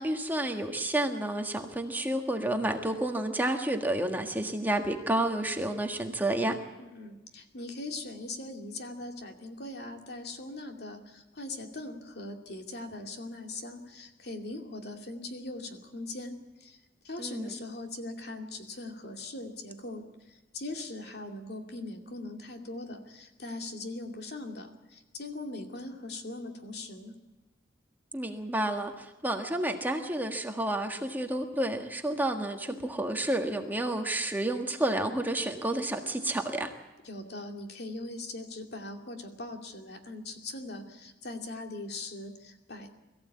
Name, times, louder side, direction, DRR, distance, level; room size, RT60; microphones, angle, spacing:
voice 1, 0.0-6.6 17.2-17.5 28.1-36.7, right 1 dB, 10° right, 4 dB, 1.6 m, -30 dB
voice 2, 6.8-16.8 17.0-27.1 37.0-42.9, left 2 dB, 65° left, 3 dB, 2.5 m, -40 dB
22.0 x 15.0 x 8.5 m, 1.1 s
head